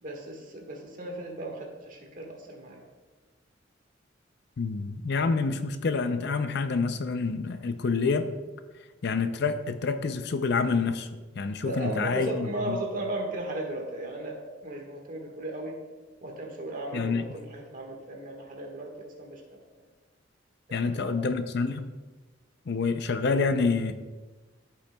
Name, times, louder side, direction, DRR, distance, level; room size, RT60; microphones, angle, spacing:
voice 1, 0.0-2.8 11.6-14.4 14.6-15.8 16.2-19.6 20.7-21.1, right 1 dB, 45° right, 1 dB, 1.5 m, -36 dB
voice 2, 4.6-8.3 9.0-11.1 11.4-12.8 16.9-17.3 20.7-21.9 22.7-23.9, left 4 dB, 55° left, 9 dB, 0.5 m, -27 dB
14.0 x 5.9 x 2.3 m, 1.3 s
head